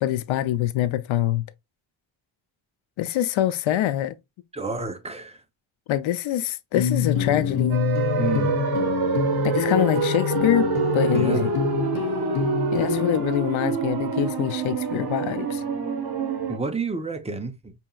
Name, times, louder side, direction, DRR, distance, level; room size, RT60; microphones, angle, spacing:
voice 1, 0.0-1.4 3.0-4.2 5.9-7.8 9.4-11.5 12.7-15.6, left 12 dB, 90° left, 0.6 m, -24 dB
voice 2, 4.5-5.4 8.2-8.5 11.1-11.5 16.5-17.7, right 3 dB, 15° right, 0.5 m, -29 dB
sound 1, 6.7-13.2, left 8 dB, 55° left, 0.7 m, -26 dB
sound 2, 7.7-16.6, right 6 dB, 55° right, 1.1 m, -26 dB
5.2 x 2.8 x 2.3 m
wide cardioid pair, 135°, 45 cm